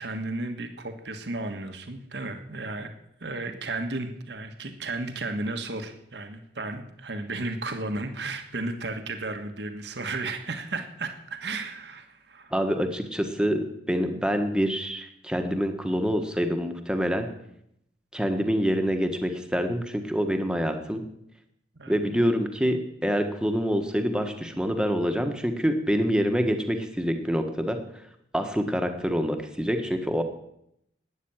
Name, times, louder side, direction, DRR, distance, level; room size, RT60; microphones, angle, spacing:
voice 1, 0.0-2.9 3.2-12.5 21.7-21.9 22.2-22.3, right 2 dB, 70° right, 6 dB, 1.5 m, -34 dB
voice 2, 12.5-17.3 18.1-21.0 21.9-27.8 28.3-30.2, equal, 5° right, 5 dB, 1.5 m, -26 dB
12.5 x 9.4 x 9.0 m, 0.77 s
head